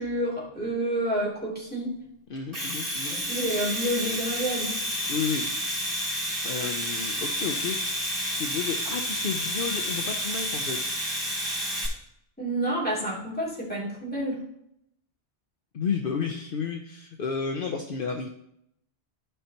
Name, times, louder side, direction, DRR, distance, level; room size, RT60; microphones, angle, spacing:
voice 1, 0.0-1.9 3.1-4.8 12.4-14.4, right 1 dB, 10° left, -7 dB, 2.8 m, -29 dB
voice 2, 2.3-3.2 5.1-5.5 6.4-10.9 15.7-18.3, left 6 dB, 65° left, 3 dB, 0.8 m, -32 dB
Domestic sounds home sounds, 2.4-11.9, equal, 35° right, 3.9 m, -30 dB
13.5 x 5.6 x 2.9 m, 0.75 s
omnidirectional pair, 1.0 m